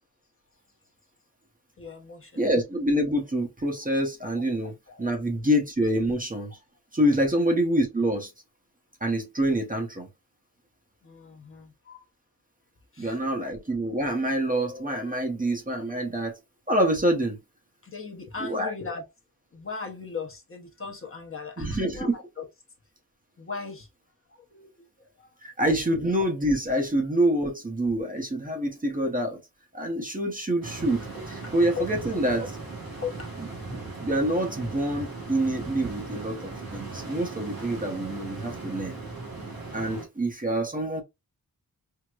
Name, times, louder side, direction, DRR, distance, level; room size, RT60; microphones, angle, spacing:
voice 1, 1.8-2.5 4.9-5.1 11.0-12.0 12.9-13.2 17.8-19.0 19.5-22.5 23.4-23.9 24.3-25.3 31.1-31.9 33.0-33.3, left 5 dB, 35° left, 0.7 m, -38 dB
voice 2, 2.4-6.6 6.9-8.3 9.0-10.1 13.0-16.4 16.7-17.4 18.4-18.7 21.6-22.1 25.4-29.4 29.7-32.6 34.0-38.9 39.7-41.0, right 1 dB, 25° right, 0.7 m, -26 dB
sound 1, 30.6-40.1, right 3 dB, 75° right, 1.6 m, -38 dB
4.6 x 2.0 x 2.3 m
wide cardioid pair, 90°, 36 cm